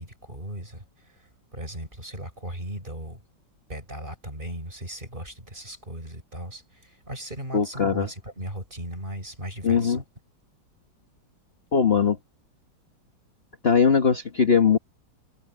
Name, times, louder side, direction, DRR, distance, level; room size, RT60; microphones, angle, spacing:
voice 1, 0.0-3.2 3.7-10.0, right 1 dB, 25° right, 7.0 m, -37 dB
voice 2, 7.5-8.1 9.6-10.0 11.7-12.2 13.6-14.8, left 6 dB, 35° left, 1.6 m, -20 dB
omnidirectional pair, 2.1 m